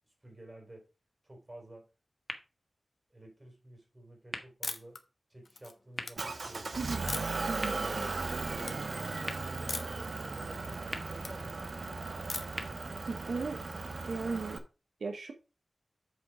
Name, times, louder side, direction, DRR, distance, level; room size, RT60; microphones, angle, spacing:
voice 1, 0.0-0.9 1.2-1.9 3.1-5.0 5.3-6.8 8.3-12.1 13.2-13.6, right 1 dB, 25° right, 1 dB, 4.1 m, -52 dB
sound 1, 2.2-14.1, left 1 dB, 15° left, 1.5 m, -49 dB
sound 2, 4.6-5.0 5.5-6.1 7.1-7.5 8.0-8.3 8.6-8.8 9.7-10.0 10.4-11.3 12.3-12.7, left 3 dB, 60° left, 1.1 m, -39 dB
Motor vehicle (road) / Engine, 6.2-14.6, right 3 dB, 55° right, 1.2 m, -37 dB
voice 2, 6.8-7.1 7.5-8.1 13.1-13.6 14.1-14.6 15.0-15.3, right 4 dB, 85° right, 6 dB, 1.0 m, -36 dB
8.0 x 5.2 x 4.8 m, 0.31 s
wide cardioid pair, 80°, 0 cm